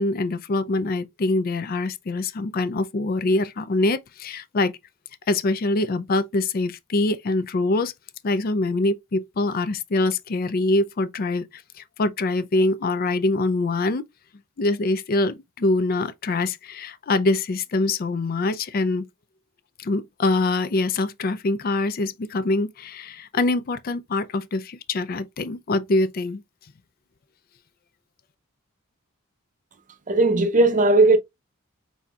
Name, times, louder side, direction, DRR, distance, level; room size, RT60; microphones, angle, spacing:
voice 1, 0.0-4.7 5.3-7.9 8.2-14.0 14.6-19.1 19.8-26.4, left 2 dB, 45° left, 0.4 m, -24 dB
voice 2, 30.1-31.2, right 2 dB, 35° right, 0.6 m, -17 dB
4.4 x 4.1 x 2.3 m
head